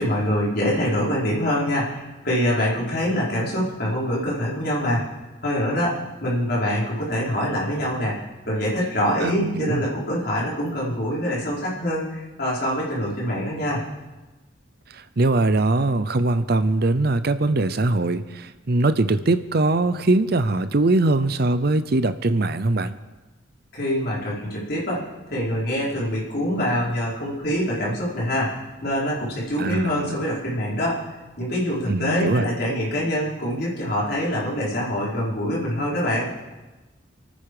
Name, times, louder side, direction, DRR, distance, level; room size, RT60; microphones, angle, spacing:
voice 1, 0.0-5.1 5.4-8.2 8.5-13.8 23.7-31.0 31.4-36.3, equal, 50° left, -6 dB, 5.0 m, -25 dB
voice 2, 9.2-9.8 15.2-22.9 29.6-30.2 31.9-32.5, right 2 dB, 50° right, 12 dB, 0.6 m, -21 dB
27.5 x 9.4 x 5.0 m, 1.2 s
head